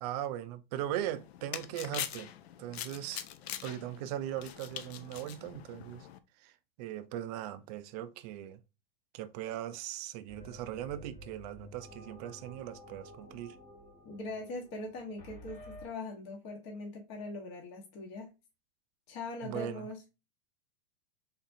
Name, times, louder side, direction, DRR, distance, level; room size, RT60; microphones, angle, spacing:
voice 1, 0.0-2.3 2.6-3.3 3.6-6.1 6.4-8.6 9.1-13.6 19.4-19.9, right 12 dB, 40° right, 0.4 m, -39 dB
sound 1, 1.0-6.2, left 11 dB, 85° left, 0.6 m, -43 dB
sound 2, 10.3-15.9, equal, 25° left, 1.0 m, -52 dB
voice 2, 14.0-18.3 19.1-20.0, left 2 dB, 45° left, 1.1 m, -41 dB
4.1 x 3.6 x 2.5 m
supercardioid pair, 145°, 31 cm